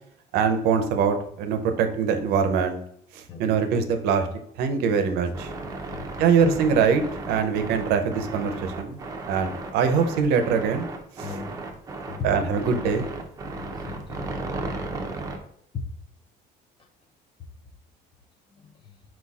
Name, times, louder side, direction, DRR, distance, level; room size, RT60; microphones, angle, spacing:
voice 1, 0.3-2.8 3.1-4.3 4.6-5.5 6.2-9.0 9.3-10.9 11.2-11.3 12.2-13.1, right 6 dB, 80° right, 7 dB, 0.6 m, -23 dB
sound 1, 5.3-15.4, right 2 dB, 20° right, 0.5 m, -35 dB
voice 2, 5.9-6.4 11.2-11.6 12.1-12.5 13.6-14.3 15.7-15.9 18.6-19.0, left 5 dB, 30° left, 4 dB, 0.5 m, -37 dB
4.4 x 4.1 x 2.3 m, 0.70 s
cardioid pair, 150°, 17 cm